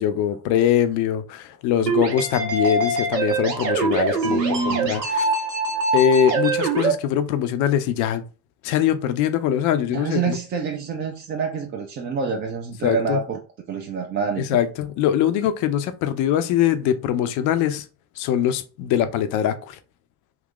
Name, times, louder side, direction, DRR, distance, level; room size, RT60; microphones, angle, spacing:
voice 1, 0.0-4.4 4.7-5.3 5.9-8.2 8.6-10.4 12.8-13.2 14.4-17.8 18.2-19.8, left 9 dB, 40° left, 0.4 m, -22 dB
sound 1, 1.9-6.9, right 3 dB, 85° right, 0.7 m, -23 dB
voice 2, 4.2-5.0 9.9-13.4 13.7-14.6, right 5 dB, 25° right, 0.4 m, -27 dB
2.8 x 2.4 x 3.6 m
figure-of-eight pair, 60°, 49 cm